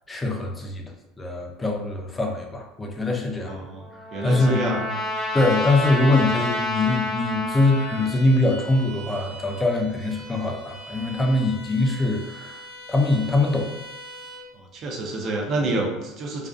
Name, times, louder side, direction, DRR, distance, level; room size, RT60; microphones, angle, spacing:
voice 1, 0.1-0.8 1.2-3.6 4.2-4.8 5.3-13.7, left 2 dB, 15° left, 2 dB, 0.4 m, -23 dB
Trumpet, 3.4-8.1, left 1 dB, ahead, 0.7 m, -29 dB
voice 2, 3.4-4.9 14.5-16.5, right 2 dB, 40° right, 1 dB, 0.5 m, -29 dB
Bowed string instrument, 7.5-14.5, equal, 60° left, 0.7 m, -42 dB
2.4 x 2.1 x 2.4 m, 0.95 s
supercardioid pair, 135°, 0 cm